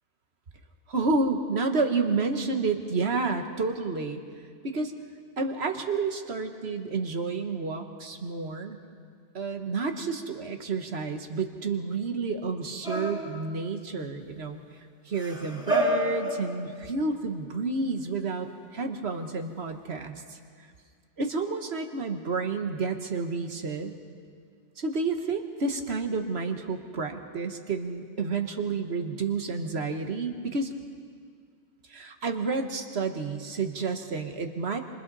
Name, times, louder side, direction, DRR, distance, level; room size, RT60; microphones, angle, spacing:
voice 1, 0.9-4.2 4.6-4.9 5.4-8.8 9.3-14.6 15.0-20.4 21.2-23.9 24.8-30.7 31.9-34.8, right 4 dB, 55° right, 6 dB, 1.5 m, -30 dB
sound 1, 12.8-13.7 15.1-17.1 18.5-18.6, right 1 dB, 5° right, 2.2 m, -30 dB
27.0 x 26.0 x 4.1 m, 2.1 s
omnidirectional pair, 1.4 m